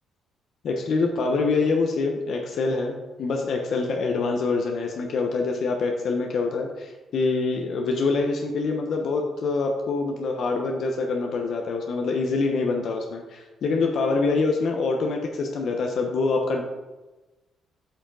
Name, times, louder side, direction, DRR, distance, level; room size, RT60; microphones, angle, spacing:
voice 1, 0.6-16.6, left 3 dB, 65° left, 2 dB, 0.8 m, -25 dB
8.8 x 4.9 x 3.9 m, 1.1 s
cardioid pair, 90°, 0 cm